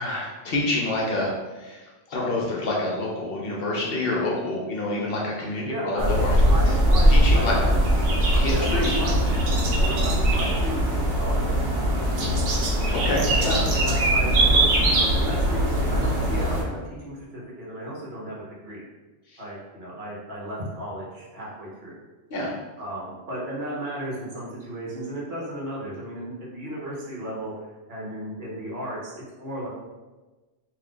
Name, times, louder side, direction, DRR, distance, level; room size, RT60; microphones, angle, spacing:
voice 1, 0.0-1.8 2.1-6.3 7.1-7.5 8.3-9.0 12.9-13.6 19.3-19.4 22.3-22.5, left 2 dB, 60° left, -3 dB, 0.8 m, -27 dB
voice 2, 5.7-6.1 6.4-7.7 8.5-9.1 9.8-11.6 11.9-12.7 13.4-18.8 19.4-21.9 22.8-27.5 27.9-29.7, right 1 dB, 60° right, -5 dB, 1.1 m, -34 dB
sound 1, 6.0-16.6, right 1 dB, 85° right, 1.0 m, -21 dB
2.6 x 2.4 x 3.6 m, 1.2 s
omnidirectional pair, 1.2 m